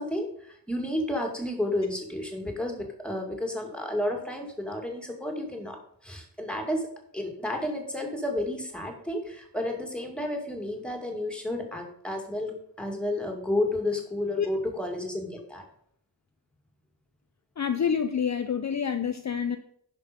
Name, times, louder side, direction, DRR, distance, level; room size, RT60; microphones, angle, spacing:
voice 1, 0.0-5.8 6.0-6.9 7.1-15.6, left 1 dB, ahead, 2 dB, 2.2 m, -31 dB
voice 2, 17.6-19.6, left 7 dB, 40° left, 8 dB, 0.6 m, -27 dB
10.5 x 6.1 x 5.1 m, 0.67 s
wide cardioid pair, 120°, 41 cm